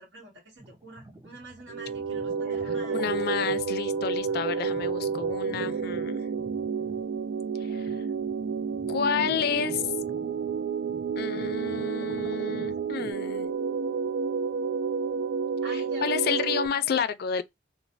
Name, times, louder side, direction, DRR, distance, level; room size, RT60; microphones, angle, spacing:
voice 1, 0.0-3.0 4.3-4.4 6.6-6.7 15.6-16.5 16.8-17.0, right 2 dB, 70° right, 1.2 m, -46 dB
sound 1, 0.6-13.1, right 1 dB, 20° right, 0.5 m, -49 dB
sound 2, 1.7-16.7, right 5 dB, 85° right, 0.3 m, -30 dB
voice 2, 2.9-6.2 7.6-7.9 8.9-9.8 11.2-13.5 16.0-17.4, left 7 dB, 55° left, 0.4 m, -30 dB
3.1 x 2.1 x 2.5 m
head